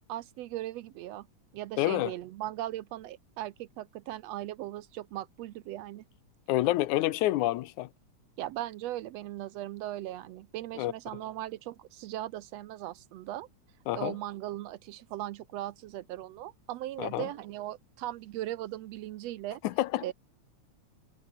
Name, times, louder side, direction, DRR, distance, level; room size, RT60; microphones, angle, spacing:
voice 1, 0.1-1.3 1.5-6.0 8.4-13.5 13.9-19.6 20.0-20.1, right 14 dB, 75° right, 1.7 m, -38 dB
voice 2, 1.8-2.1 6.5-7.9 10.8-10.9 13.9-14.2 17.0-17.3 19.6-20.0, left 16 dB, 90° left, 2.3 m, -28 dB
omnidirectional pair, 3.3 m